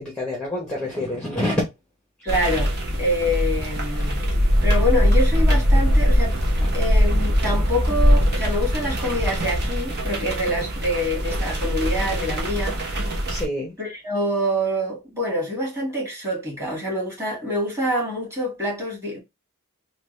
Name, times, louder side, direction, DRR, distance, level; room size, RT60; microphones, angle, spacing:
voice 1, 0.0-1.7 3.9-4.1 6.6-6.7 13.3-13.7, left 1 dB, 5° left, 0.8 m, -27 dB
voice 2, 2.2-4.2 4.6-6.4 6.7-12.8 13.0-13.3 13.8-19.2, equal, 15° right, 1.7 m, -26 dB
sound 1, 2.3-13.5, equal, 50° right, 0.9 m, -21 dB
3.4 x 2.3 x 3.1 m
head